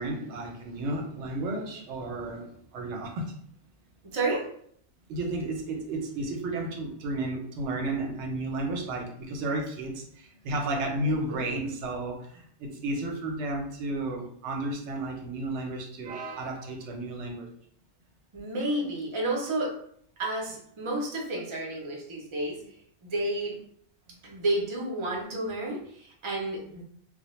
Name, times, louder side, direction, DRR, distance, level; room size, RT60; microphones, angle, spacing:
voice 1, 0.0-3.3 5.1-17.5, right 2 dB, 85° right, 1 dB, 0.9 m, -33 dB
voice 2, 4.0-4.5 11.0-11.5 18.3-19.7 20.2-22.8 23.0-23.6 24.2-26.8, right 2 dB, 35° right, -2 dB, 0.5 m, -31 dB
2.1 x 2.1 x 2.9 m, 0.64 s
omnidirectional pair, 1.1 m